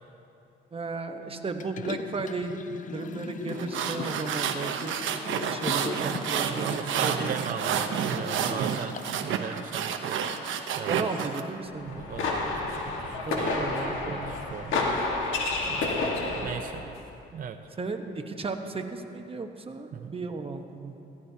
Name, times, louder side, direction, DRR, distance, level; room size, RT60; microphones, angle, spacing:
voice 1, 0.7-5.0 5.5-7.3 10.9-11.9 13.3-14.3 17.8-20.9, right 4 dB, 30° right, 5 dB, 1.0 m, -34 dB
Liquid, 1.6-9.3 9.7-9.8, left 7 dB, 40° left, 0.5 m, -40 dB
sound 1, 3.5-11.4, right 7 dB, 75° right, 0.8 m, -30 dB
voice 2, 6.4-10.2 10.8-11.2 11.9-15.3 15.7-16.8 17.3-17.6 19.9-20.1, right 7 dB, 45° right, 6 dB, 0.6 m, -38 dB
sound 2, 11.8-16.8, left 3 dB, 80° left, 1.6 m, -30 dB
16.0 x 14.5 x 2.8 m, 2.8 s
cardioid pair, 90°, 20 cm